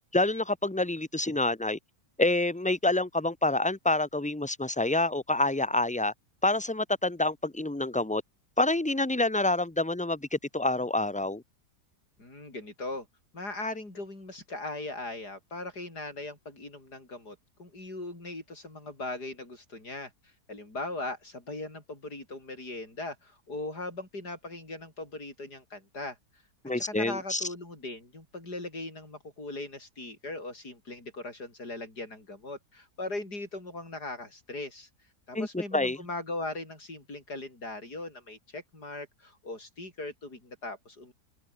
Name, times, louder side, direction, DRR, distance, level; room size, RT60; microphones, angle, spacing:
voice 1, 0.1-1.8 2.2-6.1 6.4-8.2 8.6-11.4 26.6-27.4 35.3-36.0, left 2 dB, 5° left, 0.8 m, -27 dB
voice 2, 12.2-13.1 13.3-26.2 26.7-34.9 35.3-41.1, left 2 dB, 75° left, 8.1 m, -39 dB
open air
omnidirectional pair, 1.7 m